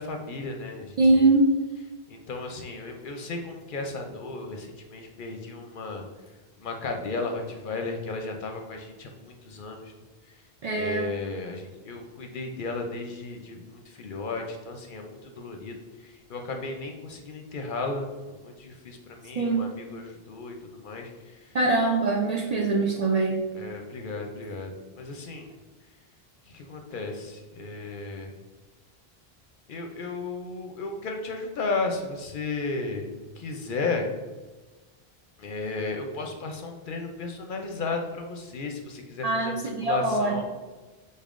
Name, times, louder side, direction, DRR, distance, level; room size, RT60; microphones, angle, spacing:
voice 1, 0.0-1.3 2.1-6.1 6.6-9.9 10.3-10.4 10.8-21.6 23.5-25.5 26.5-28.3 29.7-34.1 35.4-40.4, left 3 dB, 60° left, 3 dB, 0.6 m, -34 dB
voice 2, 1.0-1.5 10.6-11.1 19.4-19.7 21.5-23.4 39.2-40.4, right 2 dB, 55° right, -1 dB, 0.5 m, -23 dB
5.3 x 4.0 x 2.4 m, 1.2 s
omnidirectional pair, 1.1 m